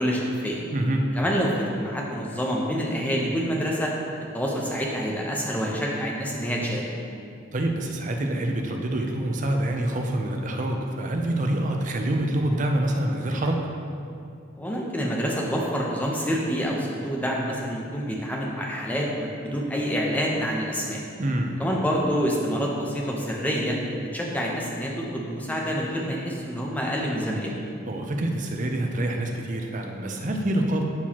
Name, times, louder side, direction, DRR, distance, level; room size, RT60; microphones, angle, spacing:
voice 1, 0.0-0.6 1.1-3.9 4.3-6.9 14.6-21.0 21.6-23.8 24.1-27.5, equal, 10° left, -3 dB, 0.7 m, -27 dB
voice 2, 0.7-1.1 7.5-13.7 21.2-21.6 27.9-30.8, right 1 dB, 40° right, 2 dB, 0.6 m, -26 dB
11.5 x 4.6 x 2.9 m, 2.5 s
head